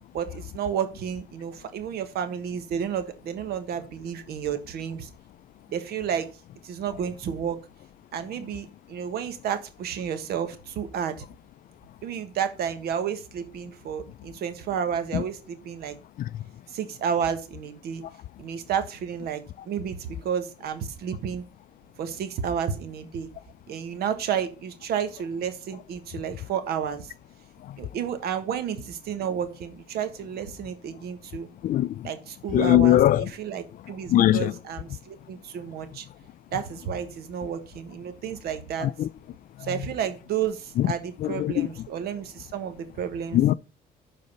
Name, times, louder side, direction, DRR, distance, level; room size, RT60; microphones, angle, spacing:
voice 1, 0.1-5.1 5.7-6.3 6.6-7.6 8.1-11.2 12.0-16.0 16.7-18.0 18.4-21.4 22.0-23.3 23.7-27.1 27.8-31.5 32.0-36.0 36.5-38.9 39.6-43.4, right 8 dB, 70° right, 1.5 m, -31 dB
voice 2, 31.6-32.1 32.5-33.3 34.1-34.5 38.8-39.1 40.8-40.9 41.2-41.7 43.3-43.5, left 13 dB, 55° left, 0.4 m, -21 dB
12.0 x 4.1 x 5.4 m
cardioid pair, 110°, 17 cm